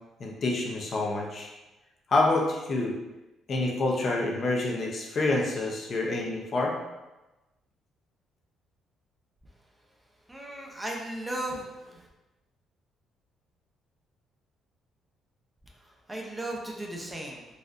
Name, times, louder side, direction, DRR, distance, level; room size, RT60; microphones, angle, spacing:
voice 1, 0.2-1.5 2.1-2.9 3.5-6.8, left 2 dB, 45° left, -1 dB, 0.6 m, -27 dB
voice 2, 10.3-12.1 15.8-17.5, right 1 dB, 15° right, 0 dB, 0.5 m, -36 dB
4.1 x 2.5 x 2.5 m, 1.1 s
cardioid pair, 105°, 0 cm